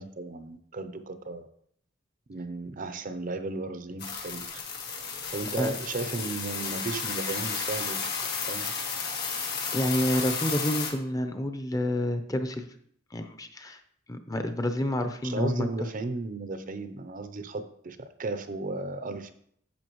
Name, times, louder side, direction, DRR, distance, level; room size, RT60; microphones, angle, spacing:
voice 1, 0.0-1.5 2.3-4.6 5.3-8.1 8.4-8.7 15.2-19.3, right 3 dB, 45° right, 10 dB, 0.6 m, -35 dB
sound 1, 4.0-10.9, left 5 dB, 55° left, 1.7 m, -33 dB
voice 2, 9.7-12.7 13.1-13.8 14.1-15.7, left 1 dB, 20° left, 7 dB, 0.7 m, -29 dB
10.5 x 7.0 x 3.1 m, 0.66 s
head